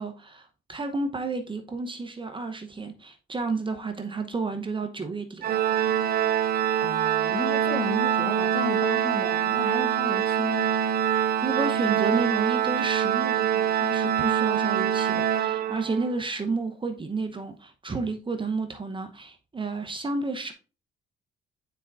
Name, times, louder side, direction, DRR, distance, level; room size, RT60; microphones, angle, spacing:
voice 1, 0.0-5.6 11.1-20.5, right 3 dB, 25° right, 0.8 m, -31 dB
Organ, 5.4-16.2, right 10 dB, 50° right, 0.5 m, -25 dB
voice 2, 6.8-10.7, left 1 dB, 25° left, 1.1 m, -34 dB
9.0 x 4.5 x 2.5 m
cardioid pair, 90°, 20 cm